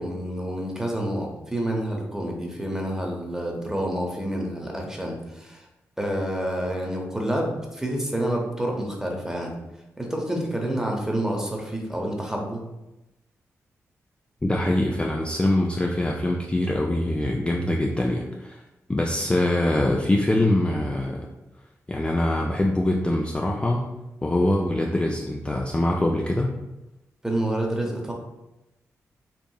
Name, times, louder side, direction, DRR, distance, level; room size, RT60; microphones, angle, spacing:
voice 1, 0.0-5.6 6.0-9.5 10.0-12.6 27.2-28.1, right 1 dB, 10° right, 0 dB, 0.8 m, -28 dB
voice 2, 14.4-18.6 18.9-21.3 21.9-23.9 24.2-26.5, left 1 dB, 15° left, -1 dB, 0.3 m, -23 dB
2.9 x 2.5 x 2.3 m, 0.96 s
supercardioid pair, 40°, 6 cm